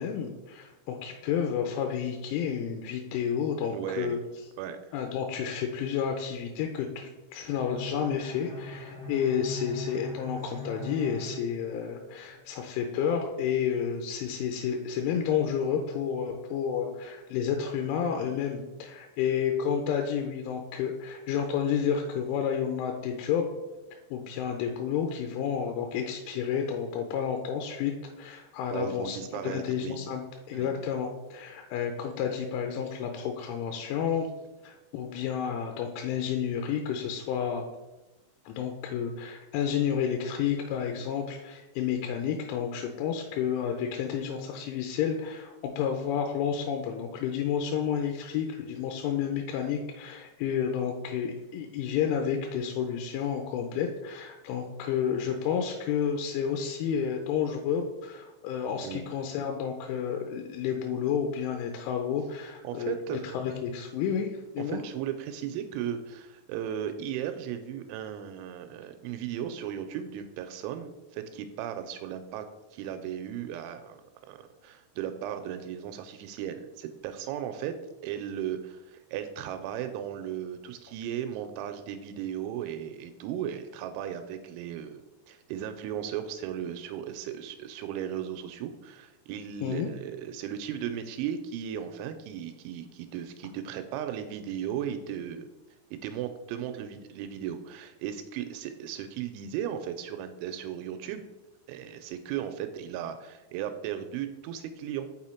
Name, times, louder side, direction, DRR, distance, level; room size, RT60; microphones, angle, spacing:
voice 1, 0.0-4.2 4.9-23.5 24.1-30.2 30.5-34.3 34.6-37.7 38.5-64.8 89.6-89.9, left 8 dB, 90° left, 4 dB, 3.1 m, -30 dB
voice 2, 3.7-4.2 4.6-4.9 28.7-30.0 30.5-30.7 58.8-59.0 62.6-63.2 64.6-72.5 72.7-74.0 74.3-77.8 78.0-85.0 85.3-95.5 95.9-101.2 101.7-105.1, right 9 dB, 85° right, 8 dB, 2.9 m, -36 dB
Bowed string instrument, 7.5-12.3, left 2 dB, 45° left, 1.9 m, -41 dB
6.2 x 5.6 x 4.3 m, 1.0 s
omnidirectional pair, 5.5 m